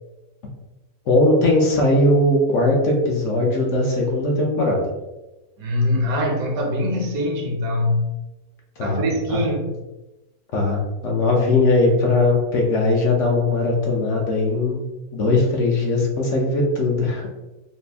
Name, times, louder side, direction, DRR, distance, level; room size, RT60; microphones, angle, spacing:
voice 1, 1.1-4.9 8.8-9.4 10.5-14.8 15.1-17.3, left 2 dB, 60° left, -1 dB, 0.9 m, -19 dB
voice 2, 5.6-8.1 8.8-9.8, left 1 dB, 70° right, 1 dB, 1.1 m, -23 dB
4.1 x 2.0 x 3.3 m, 1.0 s
omnidirectional pair, 1.6 m